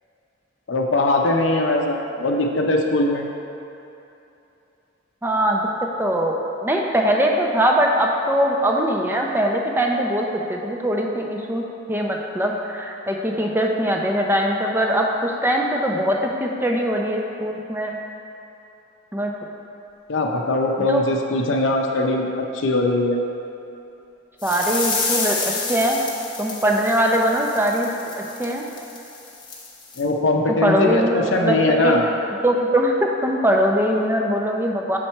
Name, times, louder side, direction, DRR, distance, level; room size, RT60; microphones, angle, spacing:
voice 1, 0.7-3.3 20.1-22.3 22.5-23.2 30.0-32.1, left 2 dB, 70° left, 1 dB, 0.6 m, -21 dB
voice 2, 5.2-5.7 6.0-6.3 6.6-11.6 11.9-18.0 19.1-19.3 20.8-21.0 24.4-26.0 26.4-28.6 30.5-31.9 32.4-35.0, equal, 10° right, 0 dB, 0.5 m, -21 dB
sound 1, 24.4-30.0, left 4 dB, 25° left, 0.8 m, -29 dB
6.5 x 4.4 x 4.4 m, 2.9 s
head